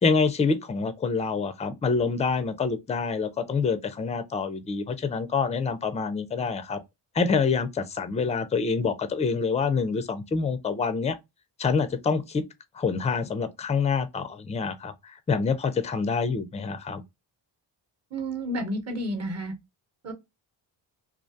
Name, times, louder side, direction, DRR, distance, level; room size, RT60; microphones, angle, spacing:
voice 1, 0.0-6.8 7.1-11.2 11.6-12.4 12.8-17.0, left 5 dB, 15° left, 0.4 m, -26 dB
voice 2, 18.1-19.5 20.0-20.1, right 1 dB, 35° right, 1.0 m, -31 dB
2.4 x 2.2 x 2.6 m
cardioid pair, 70°, 46 cm